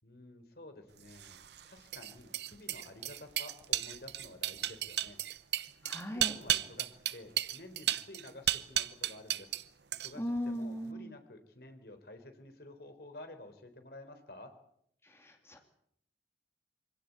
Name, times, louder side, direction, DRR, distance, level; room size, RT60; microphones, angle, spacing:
voice 1, 0.0-5.2 6.1-9.6 9.9-14.5, left 2 dB, 60° left, 7 dB, 3.9 m, -51 dB
sound 1, 1.1-9.6 9.9-10.4, right 12 dB, 70° right, 0.9 m, -34 dB
voice 2, 5.8-6.3 10.1-11.1 15.0-15.6, equal, 15° left, 4 dB, 2.5 m, -38 dB
25.0 x 17.0 x 8.8 m, 0.71 s
head